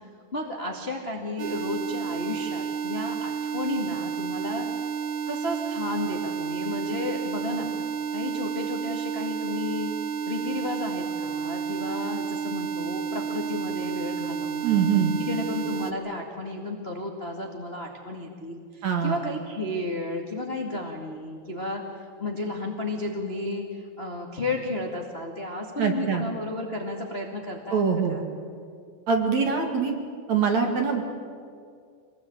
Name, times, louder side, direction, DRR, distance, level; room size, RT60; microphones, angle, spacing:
voice 1, 0.3-4.7 5.3-7.7 8.1-9.9 10.2-14.9 15.2-28.3, left 2 dB, 30° left, 1 dB, 1.1 m, -33 dB
sound 1, 1.4-15.9, right 7 dB, 75° right, 1.7 m, -31 dB
voice 2, 14.6-15.1 18.8-19.2 25.8-26.2 27.7-28.2 29.1-29.9 30.3-31.0, right 6 dB, 50° right, 3 dB, 2.8 m, -23 dB
25.5 x 20.0 x 8.8 m, 2.2 s
omnidirectional pair, 4.9 m